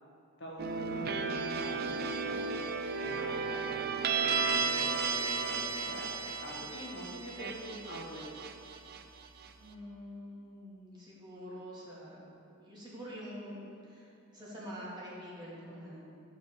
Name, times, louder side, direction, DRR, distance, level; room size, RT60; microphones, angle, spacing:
voice 1, 0.4-2.5 3.0-6.1 6.4-8.2, equal, 60° left, -3 dB, 1.9 m, -45 dB
sound 1, 0.6-9.5, right 5 dB, 45° right, 0.6 m, -34 dB
voice 2, 9.6-12.3 12.6-16.0, equal, 20° right, -8 dB, 2.8 m, -46 dB
11.5 x 5.1 x 7.5 m, 2.5 s
head